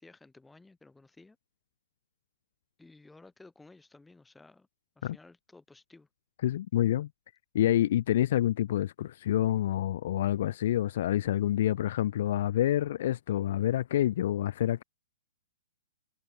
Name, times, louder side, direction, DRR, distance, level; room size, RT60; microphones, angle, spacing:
voice 1, 0.0-1.4 2.8-4.7 5.0-6.1, left 3 dB, 5° left, 5.2 m, -55 dB
voice 2, 6.4-7.1 7.5-14.8, left 12 dB, 55° left, 0.4 m, -27 dB
hypercardioid pair, 135°, 0 cm